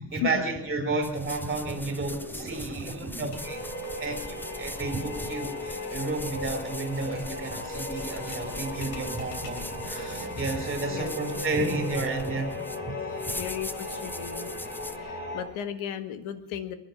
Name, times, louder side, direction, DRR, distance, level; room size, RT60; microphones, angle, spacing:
voice 1, 0.0-3.6 4.0-12.5 12.8-12.9, right 2 dB, 20° right, 3 dB, 3.1 m, -32 dB
sound 1, 1.0-15.0, left 1 dB, 5° left, 0.6 m, -41 dB
sound 2, 1.9-2.0 2.2-2.3 2.5-10.7, left 4 dB, 50° left, 3.5 m, -47 dB
sound 3, 3.3-15.4, left 1 dB, 20° left, 4.7 m, -36 dB
voice 2, 13.4-14.5 15.0-16.7, left 9 dB, 75° left, 10 dB, 1.9 m, -35 dB
22.5 x 11.0 x 5.8 m, 0.88 s
cardioid pair, 135°, 49 cm